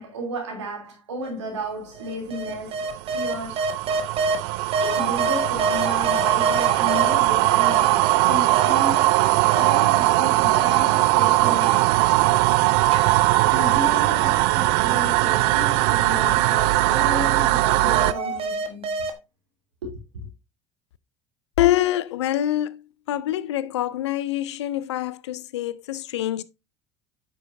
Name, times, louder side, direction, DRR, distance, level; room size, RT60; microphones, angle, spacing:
voice 1, 0.0-3.7 4.8-9.1 9.5-12.4 13.5-19.1 19.8-20.0, equal, 85° right, 3.0 m, -33 dB
sound 1, 1.2-1.3 2.0-4.4 4.7-7.1 7.6-10.2 10.5-12.5 12.9-17.6 17.9-19.1, right 3 dB, 40° right, 1.4 m, -29 dB
sound 2, 2.5-18.1, right 19 dB, 65° right, 0.4 m, -20 dB
voice 2, 21.6-22.8 23.1-26.4, left 13 dB, 80° left, 0.5 m, -25 dB
8.8 x 6.5 x 2.6 m
hypercardioid pair, 70°, 14 cm